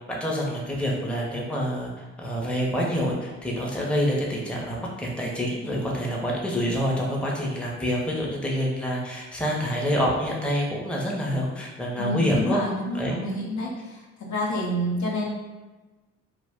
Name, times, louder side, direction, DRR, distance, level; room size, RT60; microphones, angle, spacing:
voice 1, 0.2-1.9 2.2-12.6 13.0-13.2, equal, 5° left, -3 dB, 0.7 m, -27 dB
voice 2, 12.0-15.3, equal, 55° left, -2 dB, 0.7 m, -28 dB
2.3 x 2.1 x 3.5 m, 1.2 s
hypercardioid pair, 50°, 35 cm